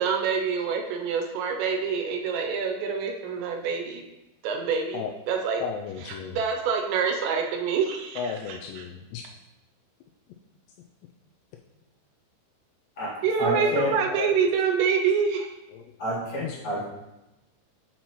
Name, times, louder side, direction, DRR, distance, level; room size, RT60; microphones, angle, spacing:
voice 1, 0.0-4.0 4.4-5.6 6.3-8.3 13.2-15.5, right 6 dB, 80° right, 2 dB, 2.8 m, -26 dB
voice 2, 5.6-6.4 8.2-9.2 13.4-14.4 15.7-15.8 16.4-16.6, left 8 dB, 85° left, 1 dB, 2.5 m, -34 dB
voice 3, 13.4-13.9 16.0-16.8, equal, 50° left, -8 dB, 2.6 m, -29 dB
8.4 x 5.7 x 3.0 m, 0.98 s
omnidirectional pair, 5.3 m